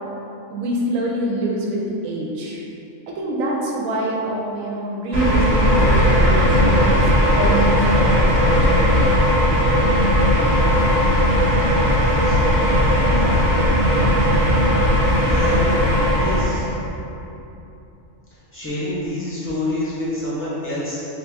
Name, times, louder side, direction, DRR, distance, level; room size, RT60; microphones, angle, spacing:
voice 1, 0.5-2.6 3.1-7.0 7.3-8.9, right 1 dB, 80° right, -2 dB, 1.0 m, -25 dB
sound 1, 5.1-16.7, equal, 50° right, 1.6 m, -17 dB
voice 2, 13.0-13.5 15.3-15.7 16.1-16.7 17.0-17.1 18.5-21.0, left 1 dB, 10° left, -10 dB, 0.8 m, -27 dB
3.3 x 2.8 x 3.3 m, 2.9 s
omnidirectional pair, 1.4 m